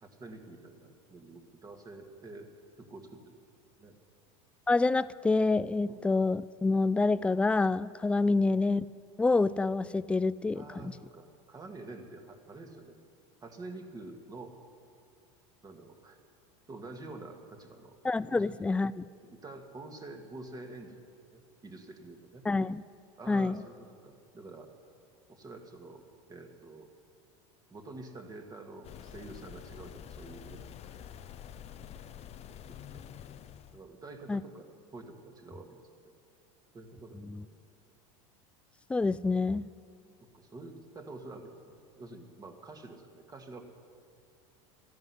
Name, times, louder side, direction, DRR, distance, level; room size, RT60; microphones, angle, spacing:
voice 1, 0.0-2.5 2.8-3.3 3.8-4.0 5.8-6.0 8.2-8.4 10.5-13.0 13.4-14.6 15.6-16.2 16.7-18.0 18.3-18.7 19.2-21.0 21.3-22.4 23.2-24.7 25.3-26.0 26.3-26.9 27.7-31.1 32.9-33.1 33.7-35.8 36.7-37.3 37.5-37.6 40.2-43.6, right 2 dB, 25° right, 4 dB, 1.9 m, -47 dB
voice 2, 4.7-8.9 9.2-10.9 18.0-19.1 22.5-22.8 23.3-23.6 34.3-34.4 37.2-37.4 38.9-39.7, left 3 dB, 5° left, 18 dB, 0.3 m, -27 dB
sound 1, 28.8-33.8, left 9 dB, 40° left, 0.8 m, -47 dB
13.5 x 10.5 x 9.8 m, 2.2 s
supercardioid pair, 105°, 17 cm